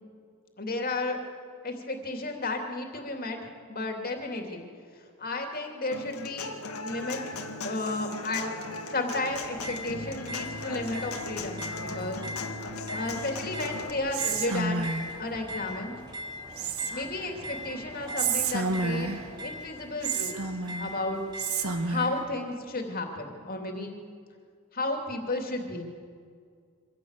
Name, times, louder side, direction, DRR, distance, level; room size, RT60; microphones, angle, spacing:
voice 1, 0.6-1.2 1.6-3.4 3.7-4.7 5.2-6.5 6.8-7.2 7.6-8.5 8.9-12.2 12.9-14.9 15.2-16.0 16.9-19.1 19.4-21.2 21.8-23.9 24.7-25.8, left 2 dB, 40° left, 3 dB, 2.8 m, -33 dB
Human voice / Acoustic guitar, 5.9-13.9, left 3 dB, 80° left, 1.8 m, -37 dB
sound 1, 9.3-21.9, left 1 dB, 20° right, 2.7 m, -41 dB
Whispering, 14.1-15.2 16.6-17.2 18.2-19.3 20.0-20.9 21.4-22.2, right 4 dB, 75° right, 1.6 m, -30 dB
25.0 x 15.5 x 8.2 m, 2.2 s
head